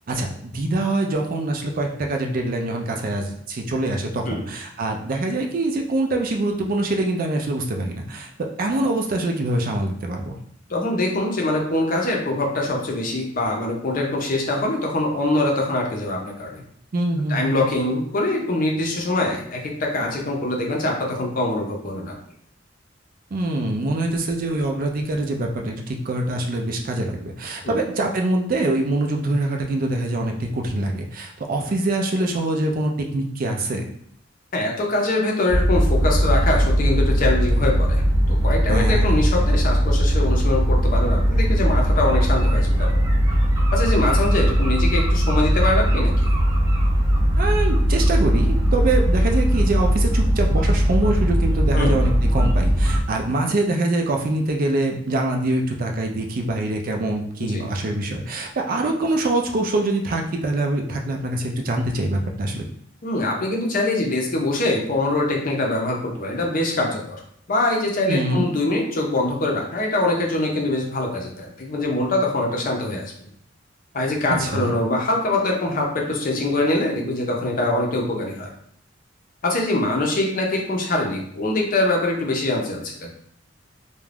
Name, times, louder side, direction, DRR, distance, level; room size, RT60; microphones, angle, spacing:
voice 1, 0.1-10.3 16.9-17.7 23.3-33.9 38.7-39.2 47.4-62.7 68.1-68.5 74.3-74.7, right 2 dB, 45° right, 2 dB, 0.4 m, -24 dB
voice 2, 10.7-16.6 17.3-22.1 27.6-27.8 34.5-38.0 38.3-42.9 43.7-46.3 51.7-52.0 57.4-57.6 63.0-67.2 67.5-73.0 73.9-78.5 79.4-83.1, left 2 dB, 45° left, 0 dB, 0.6 m, -23 dB
sound 1, 35.5-53.0, equal, 20° right, 0.7 m, -19 dB
2.4 x 2.2 x 3.3 m, 0.66 s
head